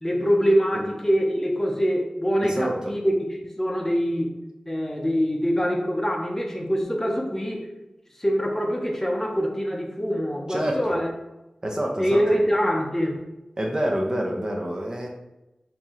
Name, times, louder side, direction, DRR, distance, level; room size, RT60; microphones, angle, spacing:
voice 1, 0.0-3.1 3.6-4.3 4.7-7.7 8.2-11.1 12.0-13.2, equal, 15° left, 1 dB, 0.6 m, -24 dB
voice 2, 2.4-2.9 10.5-11.0 11.6-12.2 13.6-15.1, right 1 dB, 30° right, 0 dB, 0.7 m, -27 dB
4.4 x 2.7 x 2.9 m, 0.97 s
wide cardioid pair, 70°, 2 cm